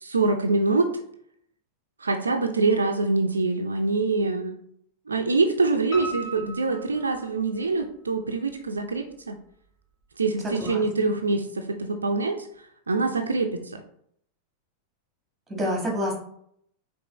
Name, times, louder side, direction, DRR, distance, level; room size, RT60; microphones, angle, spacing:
voice 1, 0.0-0.9 2.0-4.5 5.1-9.4 10.2-12.5 12.9-13.8, right 3 dB, 75° right, 5 dB, 0.4 m, -25 dB
Piano, 5.9-7.8 8.3-9.1 9.4-9.5 10.0-10.1 10.3-10.4, right 3 dB, 35° left, 1.5 m, -38 dB
voice 2, 10.4-10.8 15.5-16.2, equal, 10° right, 0 dB, 1.6 m, -27 dB
5.2 x 3.2 x 3.0 m, 0.68 s
figure-of-eight pair, 90°, 0 cm